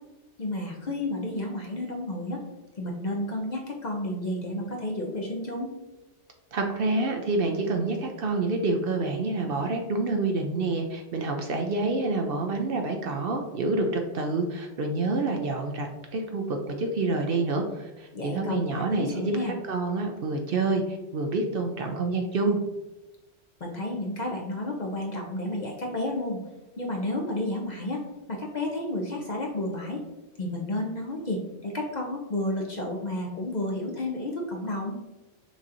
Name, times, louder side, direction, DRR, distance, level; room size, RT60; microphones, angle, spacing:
voice 1, 0.4-2.4 2.8-5.7 18.1-18.6 18.9-19.5 23.6-26.4 26.8-28.0 28.3-30.0 30.4-35.0, left 1 dB, 45° left, 0 dB, 0.6 m, -31 dB
voice 2, 6.5-22.6, right 3 dB, 60° right, 3 dB, 0.7 m, -28 dB
6.0 x 2.8 x 2.6 m, 1.0 s
omnidirectional pair, 1.2 m